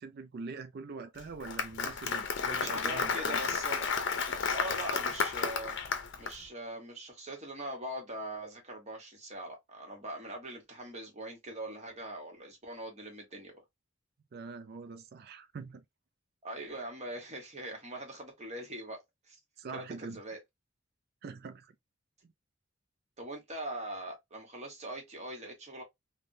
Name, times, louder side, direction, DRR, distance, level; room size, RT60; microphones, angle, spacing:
voice 1, 0.0-3.4 14.3-15.8 19.6-20.2 21.2-21.7, right 4 dB, 55° right, 0.4 m, -43 dB
Applause, 1.2-6.3, left 5 dB, 65° left, 0.6 m, -32 dB
voice 2, 2.5-3.9 4.5-5.8 6.2-13.5 16.4-19.0 19.3-19.4 19.7-20.4 23.2-25.8, right 1 dB, 35° right, 1.2 m, -42 dB
3.3 x 2.2 x 2.6 m
head